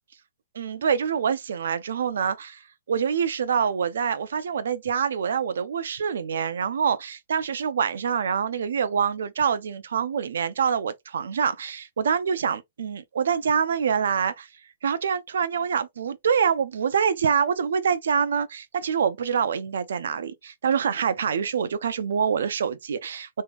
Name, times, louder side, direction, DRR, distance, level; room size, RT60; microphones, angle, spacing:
voice 1, 0.5-2.6 2.9-14.5 14.8-23.4, right 7 dB, 85° right, 0.6 m, -25 dB
3.6 x 3.2 x 2.4 m
hypercardioid pair, 180°, 0 cm